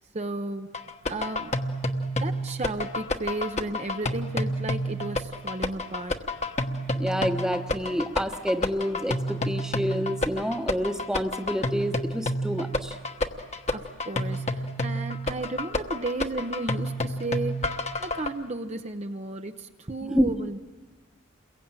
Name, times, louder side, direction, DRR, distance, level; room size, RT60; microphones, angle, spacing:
voice 1, 0.1-0.7 1.1-1.5 2.2-6.2 13.7-20.6, right 2 dB, 35° right, 6 dB, 0.8 m, -34 dB
sound 1, 0.7-18.3, left 1 dB, 35° left, 1.2 m, -29 dB
voice 2, 7.0-12.9 20.0-20.3, equal, 5° right, 6 dB, 1.1 m, -28 dB
29.0 x 22.0 x 8.9 m, 1.3 s
head